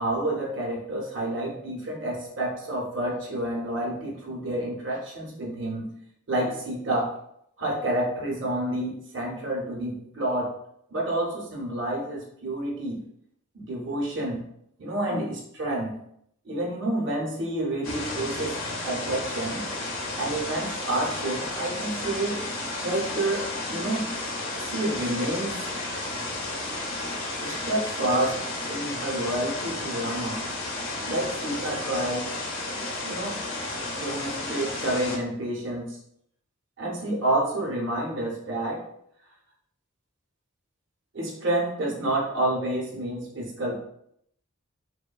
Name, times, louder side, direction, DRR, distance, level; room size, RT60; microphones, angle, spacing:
voice 1, 0.0-5.9 6.3-7.2 7.6-10.5 10.9-13.0 13.5-14.4 14.8-16.0 16.4-18.6 18.8-19.6 20.2-22.4 22.8-24.1 24.6-25.6 27.4-30.5 31.1-32.3 33.0-33.5 33.9-36.0 36.8-38.8 41.1-43.8, right 1 dB, 65° right, -1 dB, 0.7 m, -29 dB
sound 1, 17.8-35.2, left 2 dB, 85° left, 0.7 m, -32 dB
3.0 x 2.1 x 2.3 m, 0.72 s
head